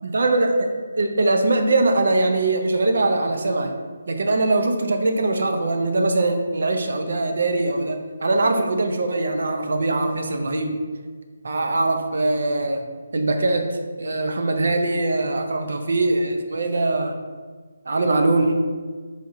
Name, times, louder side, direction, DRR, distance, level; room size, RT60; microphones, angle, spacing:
voice 1, 0.0-3.7 4.1-10.7 11.4-12.8 13.1-17.1 17.9-18.5, right 2 dB, 60° right, 5 dB, 0.6 m, -22 dB
4.8 x 4.2 x 2.6 m, 1.5 s
hypercardioid pair, 175°, 0 cm